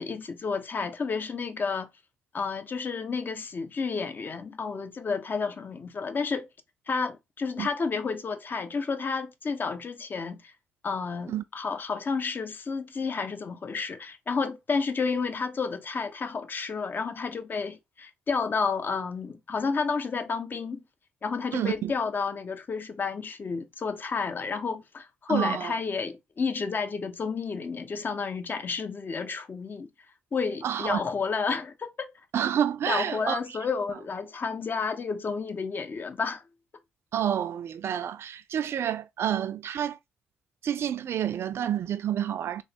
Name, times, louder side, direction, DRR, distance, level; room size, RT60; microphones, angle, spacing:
voice 1, 0.0-1.9 2.3-6.5 6.9-10.5 10.8-20.8 21.2-29.9 30.3-32.1 32.8-36.4, left 5 dB, 40° left, 0.5 m, -31 dB
voice 2, 21.5-21.9 25.3-25.7 30.6-31.0 32.3-33.4 37.1-40.0 40.6-42.6, right 9 dB, 50° right, 0.3 m, -29 dB
3.0 x 2.1 x 2.7 m
hypercardioid pair, 45°, 5 cm